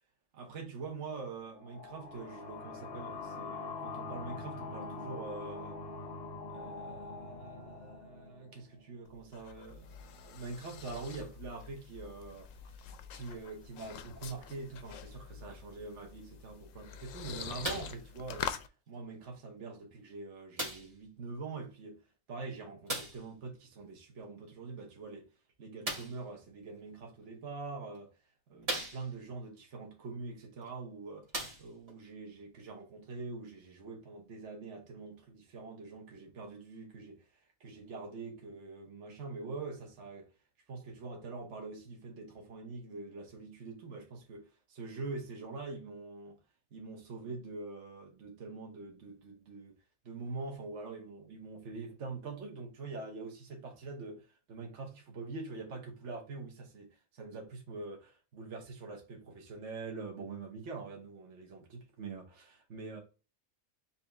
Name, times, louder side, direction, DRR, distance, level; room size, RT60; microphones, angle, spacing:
voice 1, 0.3-5.8 6.5-12.5 13.1-18.5 18.9-22.0 22.3-25.3 25.6-28.1 28.5-31.3 31.6-37.3 37.6-40.3 40.7-46.4 46.7-49.8 50.0-63.0, right 3 dB, 55° right, 1.3 m, -44 dB
sound 1, 1.5-8.9, left 3 dB, 40° left, 0.7 m, -44 dB
sound 2, 9.0-18.7, left 8 dB, 70° left, 0.9 m, -45 dB
sound 3, 17.6-18.0 18.9-19.0 20.6-21.0 22.9-23.3 25.8-26.3 27.2-27.3 27.9-28.0 28.6-29.3 30.6-30.7 31.2-32.0 32.8-32.9, right 2 dB, 25° right, 1.2 m, -38 dB
4.2 x 2.7 x 3.3 m
omnidirectional pair, 1.5 m